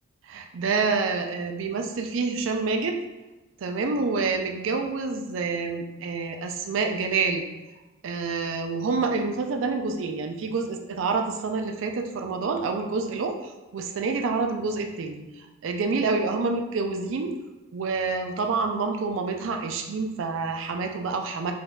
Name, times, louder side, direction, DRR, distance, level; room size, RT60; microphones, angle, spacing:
voice 1, 0.3-3.0 3.6-7.4 8.0-15.2 15.6-17.3 17.7-21.5, right 4 dB, 70° right, 4 dB, 0.4 m, -27 dB
3.7 x 2.5 x 2.2 m, 1.1 s
head